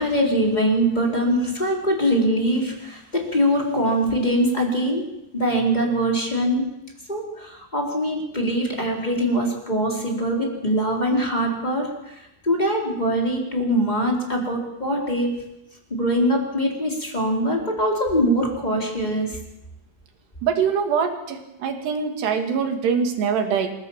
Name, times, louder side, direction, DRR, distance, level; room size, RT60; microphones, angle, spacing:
voice 1, 0.0-5.1 5.3-6.6 7.1-12.1 12.4-15.4 15.9-19.4, equal, 10° left, 0 dB, 4.1 m, -22 dB
voice 2, 20.4-21.2 21.6-23.7, right 6 dB, 80° right, 4 dB, 4.5 m, -23 dB
26.5 x 17.0 x 7.5 m, 0.90 s
omnidirectional pair, 4.8 m